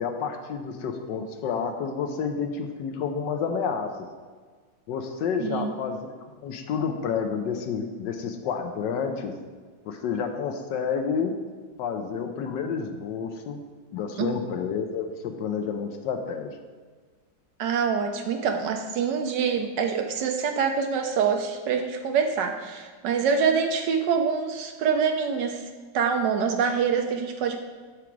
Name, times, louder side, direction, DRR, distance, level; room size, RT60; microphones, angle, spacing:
voice 1, 0.0-3.9 4.9-9.3 9.9-11.3 11.8-13.6 13.9-16.5, left 6 dB, 75° left, 6 dB, 1.2 m, -30 dB
voice 2, 5.4-5.7 14.2-14.3 17.6-25.6 25.9-27.6, right 6 dB, 70° right, 5 dB, 1.1 m, -25 dB
7.0 x 4.9 x 4.5 m, 1.5 s
omnidirectional pair, 2.1 m